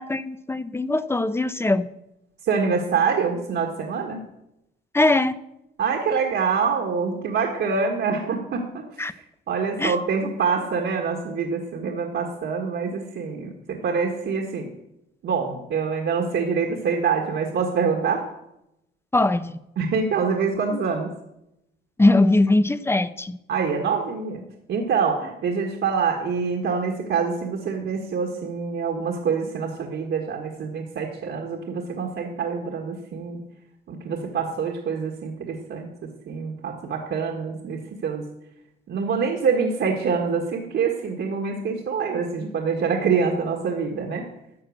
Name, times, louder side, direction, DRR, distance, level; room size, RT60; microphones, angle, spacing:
voice 1, 0.0-1.9 4.9-5.4 9.0-9.1 9.8-9.9 19.1-19.6 22.0-23.4, left 2 dB, 10° left, 14 dB, 0.7 m, -21 dB
voice 2, 2.4-4.3 5.8-14.7 15.2-18.3 19.8-21.1 23.5-33.4 33.9-38.3 38.9-44.3, right 5 dB, 65° right, 1 dB, 1.7 m, -25 dB
12.5 x 7.4 x 6.4 m, 0.85 s
cardioid pair, 90°, 20 cm